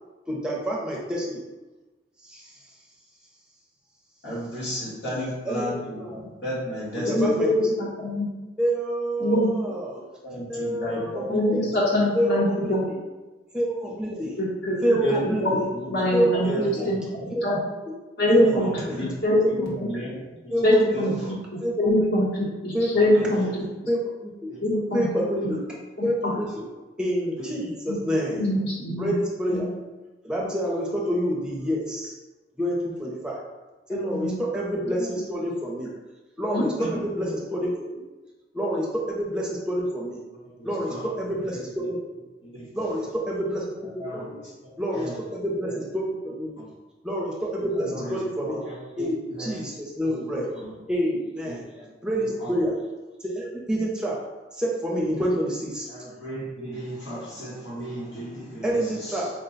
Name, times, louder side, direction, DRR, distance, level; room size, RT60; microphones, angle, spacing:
voice 1, 0.3-1.4 2.2-2.6 5.4-5.7 6.0-6.1 7.0-7.7 8.6-10.0 10.5-11.6 12.1-12.8 13.5-14.4 14.8-15.6 16.1-16.8 17.3-17.7 18.3-18.6 18.9-19.0 19.4-19.7 20.5-20.9 21.6-22.1 22.7-23.3 23.9-24.5 24.9-25.6 26.0-26.7 27.0-28.4 29.0-29.7 30.2-32.1 32.6-33.4 33.9-35.9 36.4-36.7 37.0-38.0 38.5-40.2 40.6-42.0 42.7-44.4 44.8-46.5 47.0-48.6 49.0-50.5 50.9-51.6 52.0-52.7 53.2-54.2 54.5-55.9 58.6-59.3, equal, 5° right, -3 dB, 0.6 m, -27 dB
voice 2, 4.2-7.4 9.6-9.7 10.2-11.2 11.6-12.0 15.0-15.5 15.8-16.1 16.4-17.2 18.4-19.1 19.5-20.5 20.9-21.3 22.9-23.5 24.5-24.6 26.5-26.6 27.4-27.5 36.8-37.0 40.4-41.1 42.4-42.9 44.0-44.3 44.6-45.2 45.6-45.7 47.8-48.2 48.4-49.6 50.0-50.7 51.4-51.9 52.2-52.5 55.9-59.3, equal, 85° left, -7 dB, 1.5 m, -34 dB
voice 3, 7.1-8.3 9.2-9.5 11.3-12.8 14.4-14.8 15.2-16.5 16.9-17.6 18.2-18.7 19.0-19.9 20.6-21.4 21.8-23.9 24.6-25.1 25.4-25.5 26.0-26.3 27.9-28.0 28.3-29.1 29.5-29.7 34.1-34.4 35.0-35.1 36.5-36.6, left 1 dB, 60° left, -6 dB, 1.0 m, -24 dB
3.6 x 2.2 x 3.9 m, 1.2 s
head